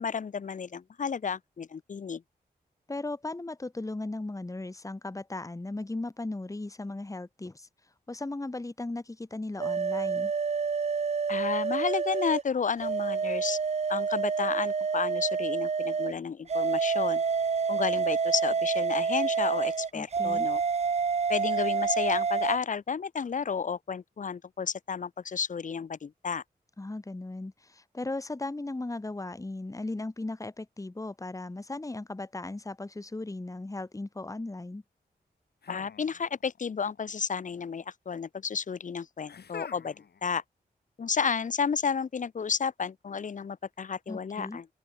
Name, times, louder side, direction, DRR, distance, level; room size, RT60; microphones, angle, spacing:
voice 1, 0.0-2.2 11.3-13.6 13.9-17.2 17.7-20.6 21.3-26.4 35.7-40.0 40.2-40.4 41.0-44.7, left 6 dB, 50° left, 0.6 m, -32 dB
voice 2, 2.9-7.7 8.1-10.3 19.9-20.5 26.8-34.8 44.1-44.6, left 2 dB, 20° left, 1.1 m, -37 dB
sound 1, 9.6-12.4 12.8-16.1 16.5-22.6, right 5 dB, 40° right, 0.5 m, -28 dB
sound 2, 35.6-36.6 36.9-37.6 39.3-40.2, left 7 dB, 75° left, 1.9 m, -46 dB
open air
cardioid pair, 45°, 17 cm